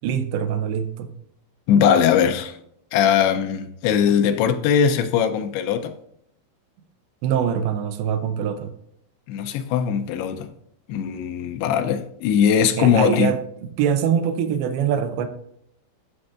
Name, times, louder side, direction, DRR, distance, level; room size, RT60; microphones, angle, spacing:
voice 1, 0.0-1.1 7.2-8.7 12.8-13.4 13.8-15.3, right 8 dB, 85° right, 2.6 m, -23 dB
voice 2, 1.7-2.6 2.9-5.9 9.3-10.5 10.9-13.3, left 8 dB, 90° left, 2.6 m, -20 dB
13.0 x 6.5 x 2.4 m
omnidirectional pair, 4.6 m